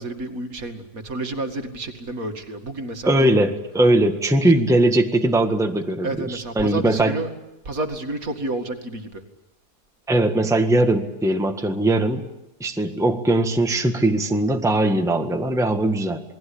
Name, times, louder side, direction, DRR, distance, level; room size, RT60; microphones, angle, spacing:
voice 1, 0.0-3.3 3.7-3.9 4.4-4.5 6.0-7.3 7.6-9.2, right 2 dB, 60° right, 5 dB, 2.6 m, -30 dB
voice 2, 3.0-7.2 10.1-12.2 12.6-16.2, right 1 dB, ahead, 5 dB, 1.6 m, -20 dB
28.5 x 20.5 x 8.6 m, 0.94 s
omnidirectional pair, 1.7 m